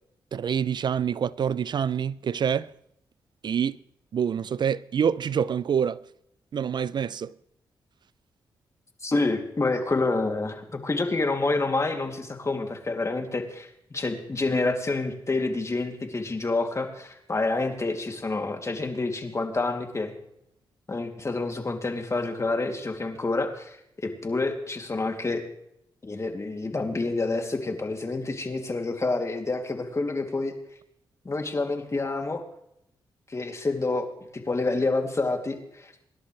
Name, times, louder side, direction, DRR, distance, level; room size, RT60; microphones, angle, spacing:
voice 1, 0.3-2.7 3.4-3.8 4.1-6.0 6.5-7.3, right 7 dB, 60° right, 0.4 m, -26 dB
voice 2, 9.0-20.2 20.9-23.8 24.0-25.4 26.0-30.5 31.2-32.4 33.3-35.9, left 3 dB, 35° left, 2.8 m, -28 dB
25.5 x 11.5 x 3.3 m
supercardioid pair, 55°, 9 cm